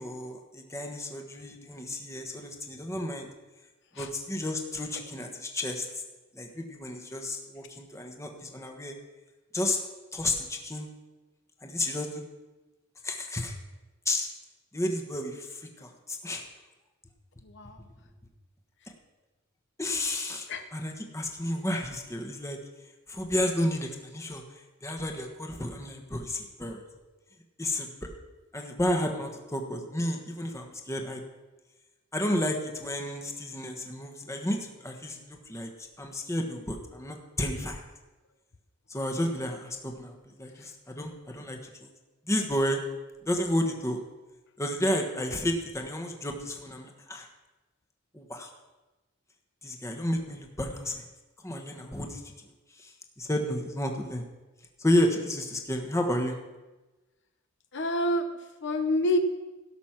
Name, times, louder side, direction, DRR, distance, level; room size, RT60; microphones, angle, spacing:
voice 1, 0.0-3.3 4.0-5.9 6.3-9.0 9.5-9.8 10.1-10.9 11.6-12.2 13.0-13.6 14.1-14.3 14.7-16.5 19.8-22.6 23.1-24.4 24.8-26.8 27.6-27.9 28.5-31.2 32.1-35.7 36.0-37.8 38.9-41.9 42.3-42.8 43.2-44.0 44.6-47.3 48.1-48.5 49.6-51.0 51.4-52.2 52.8-54.2 54.8-56.4, left 1 dB, 15° left, 3 dB, 1.3 m, -31 dB
voice 2, 57.7-58.3 58.6-59.2, left 1 dB, 60° left, 7 dB, 0.8 m, -27 dB
17.0 x 6.3 x 5.9 m, 1.1 s
head